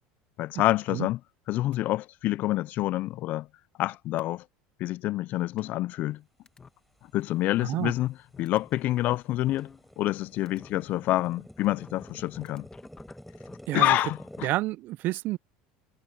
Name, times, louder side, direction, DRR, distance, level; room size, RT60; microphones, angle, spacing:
voice 1, 0.4-1.2 1.5-3.5 3.8-4.4 4.8-6.2 7.1-12.6 13.7-14.5, left 16 dB, 50° left, 0.3 m, -27 dB
sound 1, 5.6-6.2 6.5-6.7 7.2-7.3 7.6-10.2 10.5-10.7 11.6-13.6, left 5 dB, 20° left, 1.5 m, -51 dB
voice 2, 7.6-7.9 13.7-14.0 14.4-15.4, right 16 dB, 50° right, 0.5 m, -29 dB
sound 2, 8.0-8.1 8.5-14.5, equal, ahead, 5.2 m, -48 dB
supercardioid pair, 130°, 4 cm